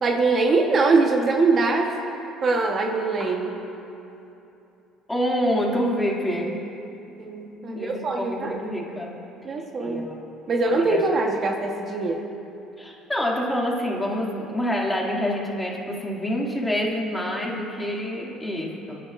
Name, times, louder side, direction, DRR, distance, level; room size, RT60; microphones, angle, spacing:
voice 1, 0.0-1.9 2.4-3.5 7.2-8.6 9.4-10.1 10.5-12.2, right 3 dB, 40° right, 2 dB, 1.2 m, -22 dB
voice 2, 5.1-6.6 7.7-9.2 9.8-10.2 10.7-11.0 12.8-19.0, equal, 10° left, -3 dB, 2.4 m, -27 dB
28.0 x 10.0 x 2.6 m, 2.9 s
supercardioid pair, 90°, 0 cm